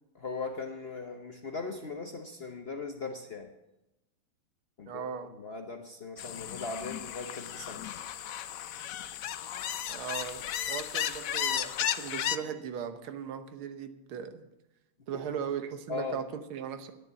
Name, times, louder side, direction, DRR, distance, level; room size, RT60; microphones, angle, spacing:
voice 1, 0.1-3.5 4.8-7.8 15.1-15.2 15.9-16.2, left 3 dB, 45° left, 4 dB, 0.8 m, -39 dB
voice 2, 4.9-5.3 9.9-14.4 15.1-16.9, right 7 dB, 90° right, 9 dB, 1.9 m, -38 dB
sound 1, 6.2-12.4, left 10 dB, 80° left, 0.7 m, -34 dB
10.5 x 10.5 x 8.1 m, 0.96 s
omnidirectional pair, 2.2 m